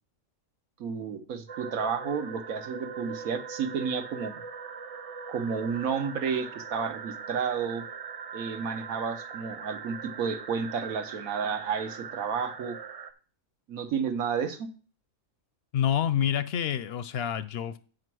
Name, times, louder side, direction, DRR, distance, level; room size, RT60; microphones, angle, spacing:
voice 1, 0.8-4.4 5.3-7.8 8.3-12.8 13.7-14.7, right 6 dB, 85° right, 8 dB, 1.4 m, -31 dB
sound 1, 1.5-13.1, right 6 dB, 45° right, 0.4 m, -41 dB
voice 2, 15.7-17.8, left 9 dB, 65° left, 14 dB, 0.6 m, -27 dB
8.0 x 5.0 x 6.1 m, 0.40 s
omnidirectional pair, 1.4 m